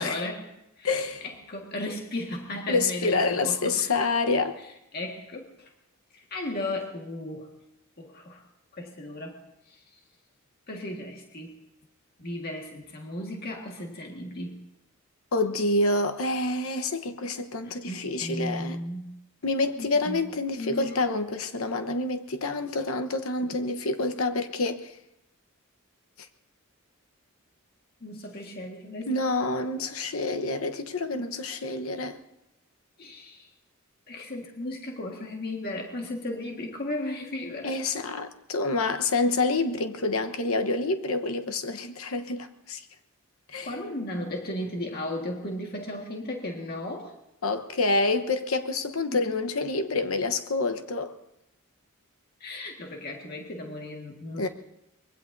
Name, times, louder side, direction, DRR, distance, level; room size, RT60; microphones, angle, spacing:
voice 1, 0.0-0.9 1.2-4.0 4.9-5.7 6.1-7.5 8.0-8.4 8.7-9.4 9.7-9.8 10.7-11.5 12.2-14.6 17.6-19.2 19.8-20.3 20.5-21.1 28.0-29.2 33.0-33.5 34.1-37.8 43.6-47.1 49.1-49.2 52.4-54.5, left 1 dB, 45° left, 1.7 m, -35 dB
voice 2, 0.8-1.2 2.7-4.6 15.3-18.8 19.4-24.9 29.1-32.2 37.6-42.8 43.5-43.7 47.4-51.1 54.4-54.5, left 3 dB, 75° left, 1.1 m, -27 dB
24.5 x 21.5 x 2.7 m
head